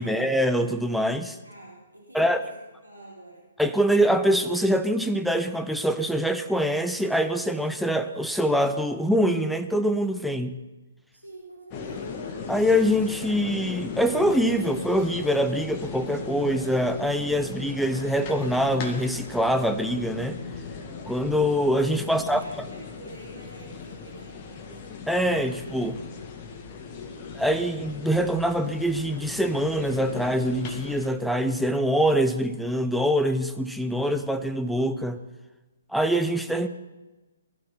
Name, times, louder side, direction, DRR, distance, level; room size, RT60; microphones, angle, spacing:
voice 1, 0.0-1.4 2.1-2.4 3.6-10.6 12.5-20.4 21.1-22.4 25.1-26.0 27.3-35.2 35.9-36.7, equal, ahead, 9 dB, 0.7 m, -24 dB
voice 2, 1.4-3.5 11.1-12.2 22.0-24.8, right 2 dB, 90° right, -4 dB, 3.5 m, -47 dB
sound 1, 11.7-31.1, left 5 dB, 30° left, 1.7 m, -38 dB
19.5 x 12.0 x 5.6 m, 1.2 s
figure-of-eight pair, 130°, 0 cm